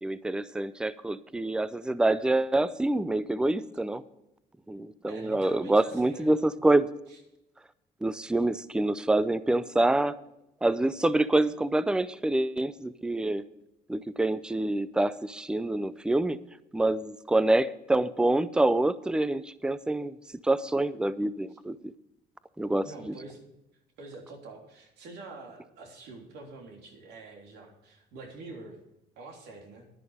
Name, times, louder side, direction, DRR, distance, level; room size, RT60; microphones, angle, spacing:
voice 1, 0.0-4.0 4.7-6.9 8.0-10.1 10.6-13.4 13.9-16.4 16.7-20.2 20.4-21.9 22.6-23.1, right 2 dB, 5° right, 16 dB, 0.5 m, -26 dB
voice 2, 5.1-6.3 7.1-7.2 22.8-23.4 24.0-28.8 29.1-29.9, right 3 dB, 80° right, 1 dB, 3.4 m, -46 dB
11.0 x 10.5 x 5.0 m, 0.89 s
cardioid pair, 110°, 17 cm